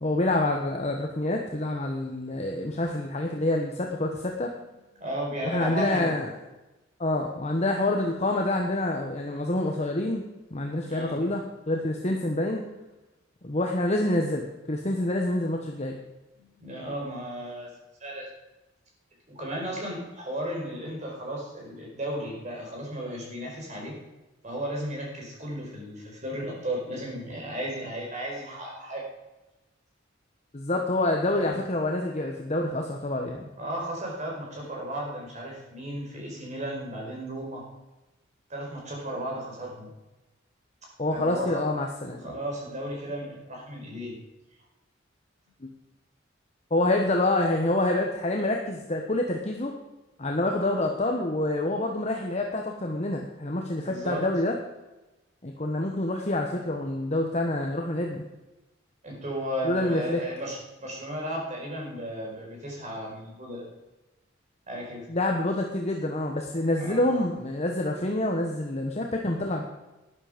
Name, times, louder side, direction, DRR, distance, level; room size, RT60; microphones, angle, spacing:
voice 1, 0.0-4.5 5.4-6.3 7.0-10.2 10.5-12.6 13.4-16.0 30.5-33.5 41.0-42.2 45.6-45.7 46.7-49.7 50.2-54.5 55.4-58.2 59.6-60.2 65.1-69.6, left 1 dB, 35° left, 1 dB, 1.2 m, -27 dB
voice 2, 5.0-6.1 10.9-11.2 16.4-17.7 18.0-18.3 19.3-23.9 24.4-29.0 31.4-31.5 33.6-37.6 38.5-39.9 41.1-41.6 42.2-44.2 53.8-54.2 59.0-63.6 64.7-65.0 66.8-67.0, right 1 dB, 35° right, -1 dB, 4.9 m, -34 dB
12.5 x 10.5 x 5.1 m, 1.0 s
head